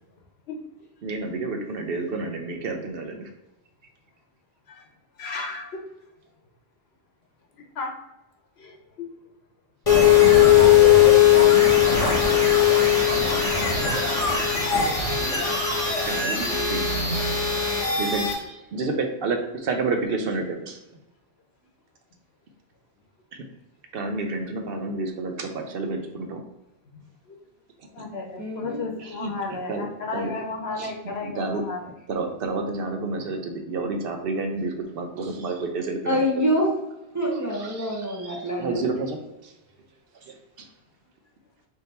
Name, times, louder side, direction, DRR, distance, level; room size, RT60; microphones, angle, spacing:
voice 1, 1.0-3.3 14.9-15.0 15.6-16.4 16.7-16.9 17.9-20.8 23.3-23.4 23.9-26.4 27.8-28.0 29.0-29.9 30.1-30.3 30.8-30.9 31.2-31.6 32.1-36.2 37.3-39.5 40.1-40.7, right 3 dB, 65° right, 4 dB, 0.7 m, -30 dB
voice 2, 5.2-5.8 7.7-8.0 8.6-9.1 27.3-27.4 27.9-31.9, left 3 dB, 65° left, 1 dB, 1.0 m, -34 dB
sound 1, 9.9-18.3, left 9 dB, 35° left, 1.0 m, -18 dB
voice 3, 12.1-13.3 28.4-28.8 36.0-36.7 37.1-38.8, equal, 20° right, -3 dB, 0.6 m, -27 dB
3.6 x 2.7 x 4.1 m, 0.94 s
omnidirectional pair, 1.1 m